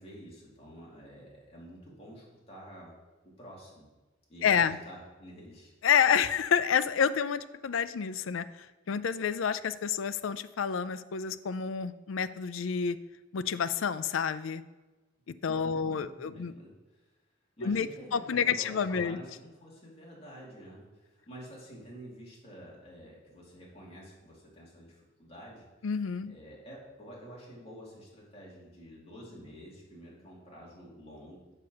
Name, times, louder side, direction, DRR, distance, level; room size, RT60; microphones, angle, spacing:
voice 1, 0.0-2.9 3.2-3.9 4.3-5.7 15.5-17.0 17.6-25.6 26.3-31.5, equal, 30° left, -5 dB, 2.7 m, -49 dB
voice 2, 4.4-4.8 5.8-13.0 13.3-14.6 15.3-16.5 17.6-19.2 25.8-26.3, left 7 dB, 80° left, 14 dB, 0.4 m, -29 dB
6.7 x 5.8 x 6.3 m, 1.2 s
head